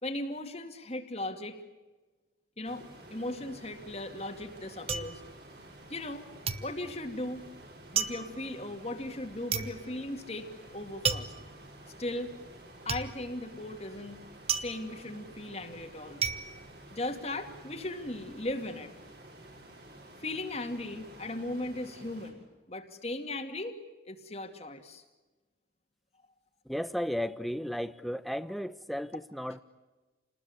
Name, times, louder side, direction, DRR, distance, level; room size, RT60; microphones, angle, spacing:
voice 1, 0.0-1.6 2.6-5.2 5.9-6.3 6.6-7.4 7.9-11.3 12.0-12.3 12.8-14.2 14.5-16.2 16.9-18.9 20.2-23.8 24.0-25.0, left 1 dB, 35° left, 4 dB, 2.3 m, -37 dB
sound 1, 2.6-22.3, right 1 dB, 55° right, 7.4 m, -51 dB
sound 2, 3.9-6.2 6.5-17.6 17.9-18.5, right 6 dB, 30° right, 1.3 m, -36 dB
voice 2, 26.7-29.6, equal, ahead, 12 dB, 0.8 m, -34 dB
29.5 x 20.5 x 9.7 m, 1.2 s
head